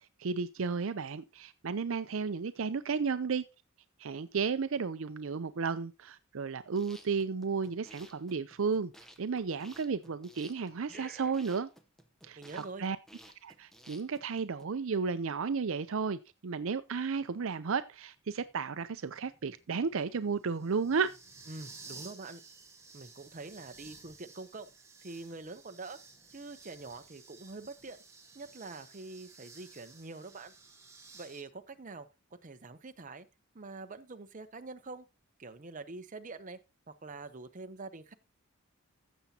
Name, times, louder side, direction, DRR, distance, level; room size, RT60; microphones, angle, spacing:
voice 1, 0.2-3.4 4.0-8.9 9.2-11.7 12.2-13.0 13.4-21.1, right 5 dB, 65° right, 0.5 m, -33 dB
sound 1, 6.6-14.6, equal, ahead, 0.9 m, -54 dB
voice 2, 12.4-12.9 21.5-22.4 22.9-24.7 25.0-26.0 26.3-28.0 28.3-30.5 31.1-32.1 32.4-33.3 33.5-35.1 35.4-36.6 36.9-38.1, right 3 dB, 40° right, 0.8 m, -45 dB
sound 2, 18.3-31.4, right 4 dB, 15° right, 1.4 m, -55 dB
15.0 x 7.1 x 2.8 m
head